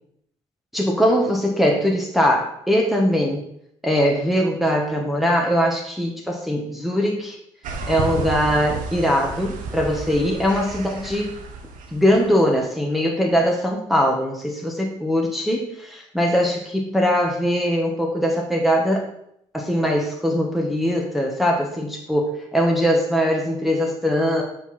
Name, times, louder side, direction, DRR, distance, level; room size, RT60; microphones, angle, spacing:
voice 1, 0.7-3.4 3.8-7.4 7.9-11.3 11.9-19.1 19.5-24.4, equal, ahead, -1 dB, 1.4 m, -21 dB
sound 1, 7.6-12.4, right 4 dB, 80° right, 0.9 m, -32 dB
7.1 x 4.0 x 4.3 m, 0.72 s
supercardioid pair, 60°, 13 cm